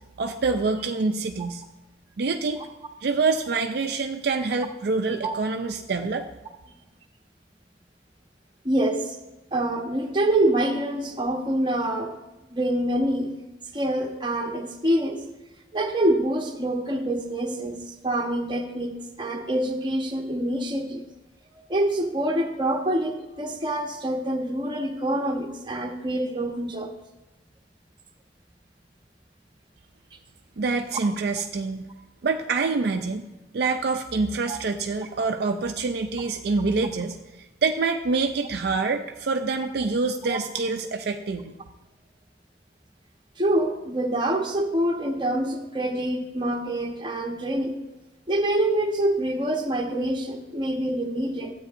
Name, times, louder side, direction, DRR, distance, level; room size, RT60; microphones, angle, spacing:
voice 1, 0.2-1.6 2.2-2.6 3.0-6.3 30.6-31.8 32.2-33.2 33.5-37.2 37.6-41.6, right 4 dB, 60° right, 5 dB, 0.5 m, -26 dB
voice 2, 8.6-9.2 9.5-12.1 12.5-13.3 13.7-15.2 15.7-21.0 21.7-26.9 34.5-34.6 40.3-40.4 43.4-47.8 48.3-51.5, right 1 dB, 25° right, 2 dB, 1.0 m, -26 dB
13.0 x 8.3 x 2.6 m, 1.1 s
head